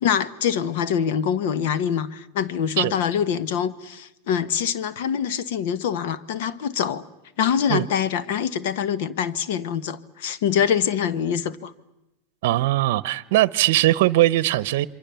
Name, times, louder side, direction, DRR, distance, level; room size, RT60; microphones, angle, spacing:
voice 1, 0.0-7.0 7.4-11.7, left 8 dB, 65° left, 1.3 m, -24 dB
voice 2, 12.4-14.9, right 16 dB, 60° right, 0.8 m, -20 dB
28.0 x 23.5 x 7.0 m
hypercardioid pair, 115°, 0 cm